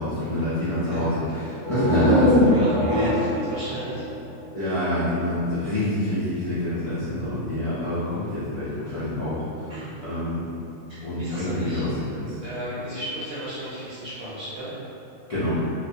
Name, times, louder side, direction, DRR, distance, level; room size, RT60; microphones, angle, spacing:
voice 1, 0.0-1.2 1.7-2.6 2.9-3.2 4.5-9.7 10.0-10.4 11.0-12.4 15.3-15.6, left 1 dB, 65° left, -14 dB, 0.3 m, -25 dB
voice 2, 0.7-1.5 2.5-4.1 9.7-10.0 10.9-11.9 12.4-14.7, right 1 dB, 55° right, -10 dB, 0.8 m, -34 dB
sound 1, 1.5-5.2, right 1 dB, 25° right, 0.7 m, -26 dB
2.4 x 2.2 x 2.6 m, 2.7 s
omnidirectional pair, 1.4 m